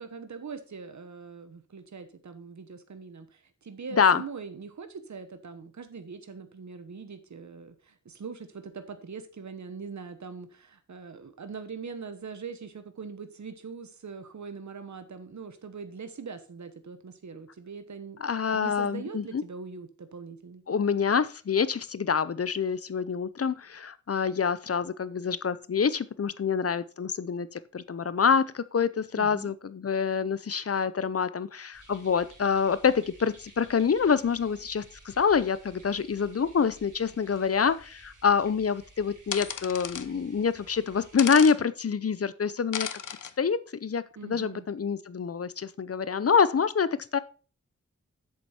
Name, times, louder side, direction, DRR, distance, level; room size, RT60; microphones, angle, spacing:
voice 1, 0.0-18.2 18.5-20.6 29.2-29.5 44.2-44.6, right 5 dB, 70° right, 9 dB, 1.0 m, -42 dB
voice 2, 18.2-19.4 20.7-42.9 43.4-47.2, left 6 dB, 50° left, 16 dB, 0.6 m, -26 dB
sound 1, 31.7-41.4, right 2 dB, 85° right, 3.8 m, -54 dB
sound 2, 39.3-40.1 41.2-41.6 42.7-43.3, left 7 dB, 85° left, 0.7 m, -34 dB
7.9 x 7.0 x 4.3 m, 0.37 s
wide cardioid pair, 85°, 30 cm